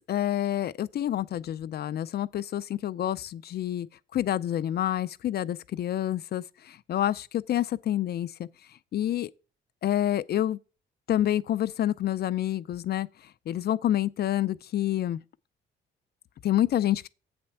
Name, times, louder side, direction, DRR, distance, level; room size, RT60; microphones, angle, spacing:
voice 1, 0.1-3.9 4.1-9.3 9.8-10.6 11.1-15.2 16.4-17.1, left 12 dB, 55° left, 0.4 m, -28 dB
8.0 x 4.3 x 5.8 m
cardioid pair, 90°, 20 cm